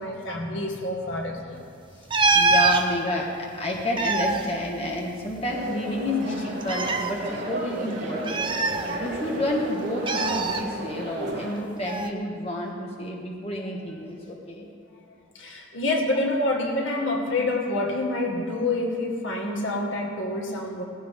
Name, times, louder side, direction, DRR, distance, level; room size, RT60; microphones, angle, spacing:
voice 1, 0.0-1.6 15.3-20.8, left 2 dB, 65° left, 0 dB, 1.9 m, -27 dB
sound 1, 2.1-2.8 3.7-5.4 5.7-5.8 6.6-7.1 8.3-9.3 10.1-10.6 11.9-12.1, right 3 dB, 25° right, 0.7 m, -23 dB
voice 2, 2.3-8.7 9.0-14.6, left 1 dB, 30° left, -2 dB, 1.6 m, -30 dB
sound 2, 5.5-11.5, right 1 dB, 50° right, 3.6 m, -33 dB
19.0 x 15.5 x 3.8 m, 2.3 s
head